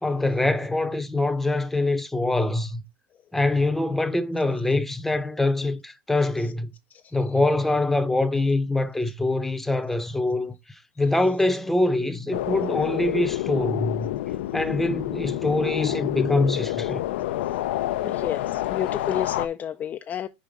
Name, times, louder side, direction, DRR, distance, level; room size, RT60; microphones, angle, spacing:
voice 1, 0.0-2.8 3.3-6.7 7.1-14.1 14.5-17.0, left 2 dB, 5° left, 0.7 m, -24 dB
sound 1, 12.3-19.5, left 14 dB, 85° left, 0.5 m, -28 dB
voice 2, 18.0-20.3, left 9 dB, 30° left, 0.4 m, -30 dB
4.8 x 4.8 x 5.2 m
supercardioid pair, 135°, 6 cm